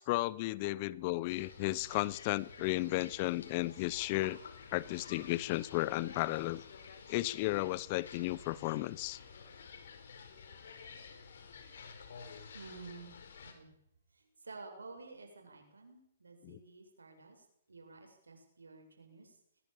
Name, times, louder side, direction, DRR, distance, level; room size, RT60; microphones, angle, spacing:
voice 1, 0.0-4.4 4.7-6.6 7.1-9.2 16.4-16.6, left 19 dB, 35° left, 0.9 m, -34 dB
sound 1, 1.3-13.5, left 6 dB, 65° left, 4.8 m, -52 dB
voice 2, 12.5-13.1 13.5-13.7 14.4-19.3, right 3 dB, 85° right, 7.7 m, -52 dB
21.5 x 21.0 x 7.4 m
figure-of-eight pair, 130°, 0 cm